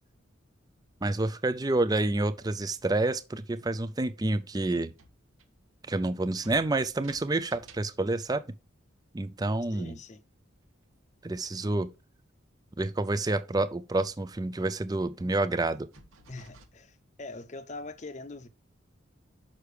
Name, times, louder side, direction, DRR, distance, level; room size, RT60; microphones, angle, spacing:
voice 1, 1.0-4.9 5.9-8.4 9.1-10.0 11.2-11.9 12.8-15.9, right 2 dB, 20° right, 0.4 m, -28 dB
sound 1, 1.4-2.3 2.7-2.8 3.8-3.9 4.2-6.0 6.4-8.2 8.9-9.0 10.7-10.9 12.1-12.2 12.5-12.6 12.9-13.0 14.7-16.7, right 3 dB, 90° right, 1.2 m, -56 dB
voice 2, 9.7-10.2 16.3-18.5, left 2 dB, 35° left, 0.7 m, -42 dB
6.6 x 5.7 x 4.9 m
head